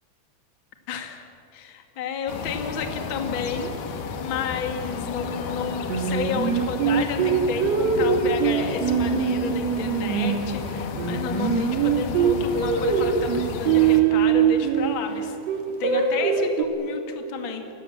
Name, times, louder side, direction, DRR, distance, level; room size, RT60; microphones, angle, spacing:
voice 1, 0.9-1.2 1.5-15.4 15.8-17.6, left 6 dB, 40° left, 5 dB, 2.2 m, -31 dB
sound 1, 2.3-14.0, left 5 dB, 60° left, 2.9 m, -33 dB
Singing, 5.9-10.6 11.0-15.0 15.5-16.6, right 7 dB, 50° right, 2.6 m, -22 dB
29.0 x 21.0 x 7.4 m, 2.7 s
omnidirectional pair, 4.6 m